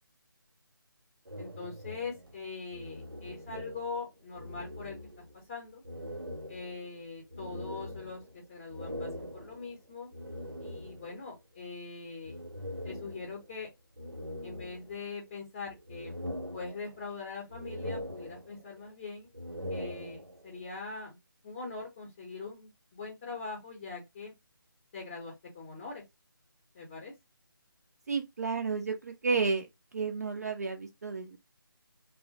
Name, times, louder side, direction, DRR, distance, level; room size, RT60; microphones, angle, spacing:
sound 1, 1.2-4.1 4.3-5.4 5.8-11.3 12.2-13.5 14.0-15.3 15.7-17.2 17.5-18.8 19.2-20.6, equal, 90° right, 0.9 m, -42 dB
voice 1, 1.4-5.8 6.5-10.1 10.6-12.4 12.8-13.7 14.4-16.1 16.5-19.3 19.7-21.2 21.4-24.3 24.9-26.0 26.7-27.1, left 4 dB, 15° left, 0.6 m, -42 dB
voice 2, 28.1-29.7 29.9-31.4, right 4 dB, 45° right, 0.4 m, -31 dB
2.9 x 2.1 x 2.6 m
figure-of-eight pair, 155°, 12 cm